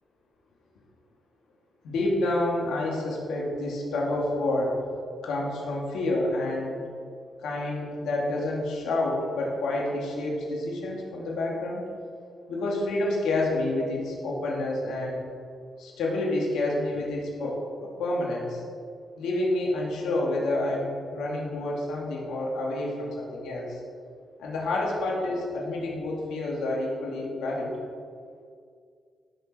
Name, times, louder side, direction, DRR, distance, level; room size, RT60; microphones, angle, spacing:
voice 1, 1.8-4.8 5.2-6.8 7.4-11.8 12.5-15.2 15.8-18.6 19.2-23.8 24.4-27.8, left 2 dB, 85° left, -3 dB, 2.8 m, -28 dB
17.0 x 6.8 x 4.7 m, 2.2 s
supercardioid pair, 60°, 0 cm